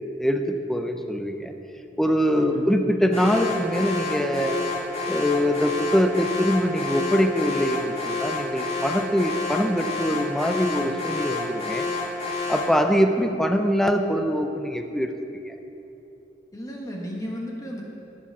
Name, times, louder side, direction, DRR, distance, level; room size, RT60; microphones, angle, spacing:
voice 1, 0.2-1.5 2.0-4.6 5.1-11.9 12.5-15.1 15.5-15.6, equal, ahead, 5 dB, 0.5 m, -23 dB
voice 2, 2.3-2.8 16.5-17.8, equal, 20° left, -2 dB, 1.2 m, -34 dB
Alarm, 3.1-12.8, left 3 dB, 35° left, 2.3 m, -29 dB
12.0 x 7.5 x 5.9 m, 2.9 s
head